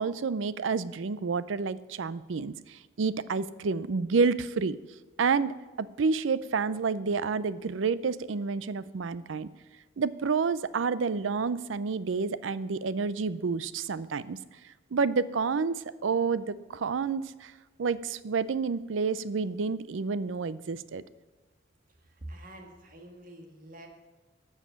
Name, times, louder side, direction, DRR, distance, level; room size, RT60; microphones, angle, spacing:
voice 1, 0.0-4.8 5.2-5.5 5.8-9.5 10.0-14.4 14.9-17.5 17.8-21.0, right 5 dB, 80° right, 17 dB, 0.5 m, -29 dB
voice 2, 21.9-23.9, right 1 dB, 45° right, 3 dB, 1.8 m, -46 dB
12.5 x 6.5 x 7.3 m, 1.2 s
head